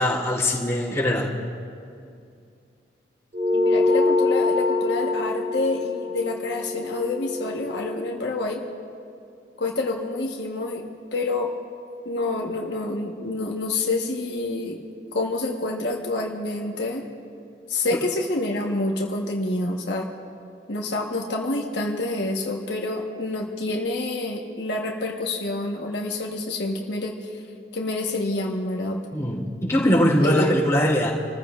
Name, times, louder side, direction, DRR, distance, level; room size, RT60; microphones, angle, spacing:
voice 1, 0.0-1.3 29.1-31.1, equal, 15° left, -6 dB, 3.1 m, -21 dB
sound 1, 3.3-8.1, left 3 dB, 35° right, 1.0 m, -24 dB
voice 2, 3.5-8.6 9.6-10.8 11.1-11.5 12.0-14.8 15.1-17.0 17.7-20.1 20.7-27.1 27.7-29.0 30.2-30.5, left 2 dB, 80° left, 0 dB, 1.3 m, -27 dB
29.5 x 14.5 x 2.5 m, 2.4 s
head